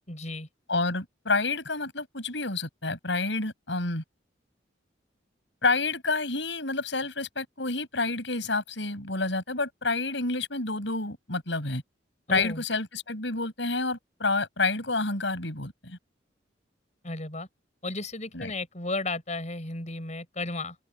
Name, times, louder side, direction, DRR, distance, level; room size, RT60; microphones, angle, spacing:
voice 1, 0.1-0.5 12.3-12.6 17.0-17.5 17.8-20.8, left 2 dB, 40° left, 5.9 m, -34 dB
voice 2, 0.7-4.0 5.6-11.8 12.3-16.0 18.3-18.5, left 3 dB, 70° left, 7.1 m, -29 dB
head